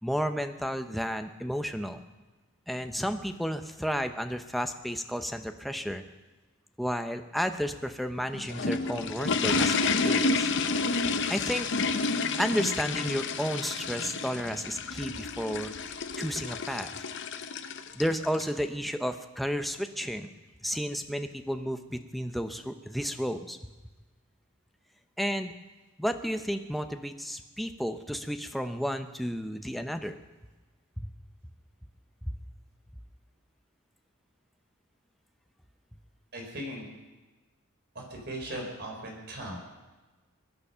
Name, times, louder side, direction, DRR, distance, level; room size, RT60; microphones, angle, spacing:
voice 1, 0.0-2.0 2.7-6.0 6.8-10.5 11.3-11.7 12.4-15.7 16.2-17.0 17.9-20.3 20.6-23.6 25.2-25.5 26.0-30.2 31.0-31.1 32.2-32.3, equal, ahead, 7 dB, 0.7 m, -32 dB
sound 1, 8.2-18.5, left 4 dB, 55° left, 0.9 m, -30 dB
voice 2, 36.3-36.9 37.9-39.6, right 1 dB, 50° right, 1 dB, 4.2 m, -38 dB
22.0 x 9.8 x 5.7 m, 1.2 s
head